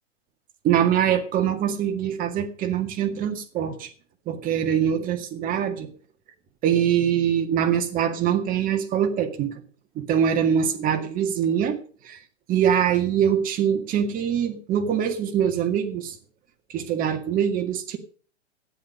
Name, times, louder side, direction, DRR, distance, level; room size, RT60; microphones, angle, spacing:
voice 1, 0.6-3.9 4.3-5.9 6.6-9.5 10.0-11.8 12.0-12.2 12.5-16.2 16.7-18.0, right 9 dB, 25° right, 6 dB, 2.0 m, -23 dB
13.0 x 10.0 x 5.2 m, 0.42 s
figure-of-eight pair, 110°, 36 cm